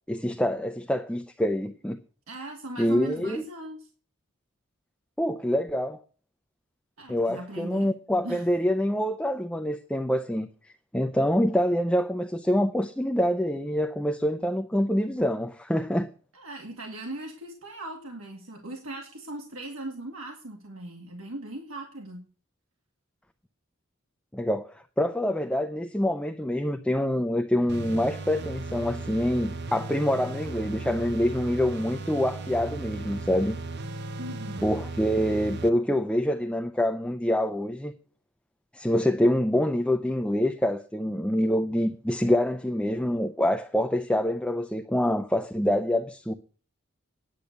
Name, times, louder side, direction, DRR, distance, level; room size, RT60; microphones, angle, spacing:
voice 1, 0.1-2.0 2.8-3.5 5.2-6.0 7.1-16.1 24.3-33.5 34.6-37.9 38.7-46.3, equal, 5° left, 0.6 m, -26 dB
voice 2, 2.3-3.9 7.0-7.9 8.2-8.5 16.3-22.3 34.2-34.7, right 2 dB, 80° right, 2.1 m, -39 dB
sound 1, 27.7-35.7, right 3 dB, 50° right, 0.8 m, -36 dB
10.5 x 6.7 x 8.1 m
head